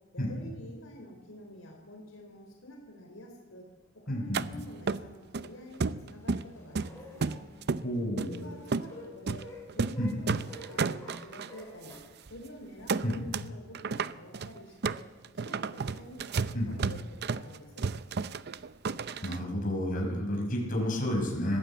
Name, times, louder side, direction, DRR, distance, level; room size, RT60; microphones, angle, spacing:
voice 1, 0.1-3.7 4.1-7.4 8.2-9.5 9.7-12.0 12.3-15.0 15.3-17.9, equal, 80° left, 1 dB, 3.8 m, -48 dB
sound 1, 3.8-4.1 4.6-4.7 5.4-7.5 8.1-12.0, left 1 dB, 15° left, 6.6 m, -50 dB
voice 2, 4.1-4.6 7.8-8.4 10.0-10.1 13.0-13.3 16.5-16.9 19.2-21.6, equal, 45° left, 0 dB, 5.8 m, -31 dB
sound 2, 4.3-4.5 4.9-5.5 5.8-6.5 6.7-7.8 8.2-8.4 8.7-8.9 9.3-9.4 9.7-10.0 10.3-11.5 11.9-12.0 12.3-12.5 12.9-13.5 13.7-19.4, right 4 dB, 55° right, 0.6 m, -32 dB
20.5 x 15.5 x 8.5 m, 1.3 s
head